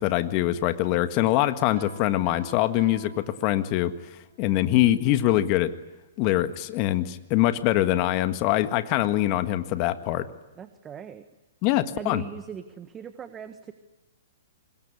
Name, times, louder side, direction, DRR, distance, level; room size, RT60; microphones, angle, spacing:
voice 1, 0.0-3.9 4.4-5.7 6.2-10.3 11.6-12.2, left 14 dB, 40° left, 10 dB, 1.7 m, -23 dB
Piano, 1.8-4.1, right 4 dB, 55° right, 4.7 m, -47 dB
voice 2, 10.6-11.2 11.9-13.7, right 8 dB, 20° right, 10 dB, 1.5 m, -39 dB
25.5 x 22.0 x 9.7 m, 1.1 s
hypercardioid pair, 120°, 0 cm